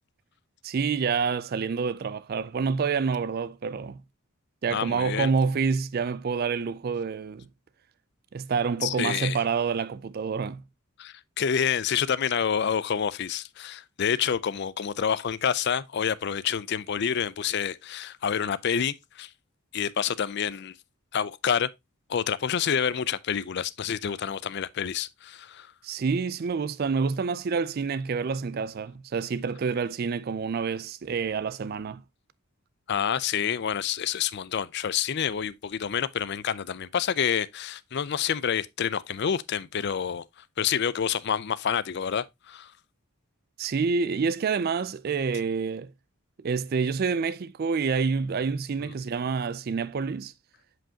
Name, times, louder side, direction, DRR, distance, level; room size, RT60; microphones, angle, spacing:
voice 1, 0.6-4.0 4.6-7.5 8.3-10.6 25.8-32.0 43.6-45.9 46.4-50.3, right 5 dB, 45° right, 0.4 m, -28 dB
voice 2, 4.7-5.3 8.8-9.4 11.0-19.3 19.7-20.7 21.1-21.7 22.1-25.7 32.9-40.2 40.6-42.7 48.8-48.9, left 8 dB, 50° left, 0.4 m, -28 dB
7.7 x 5.1 x 2.8 m
head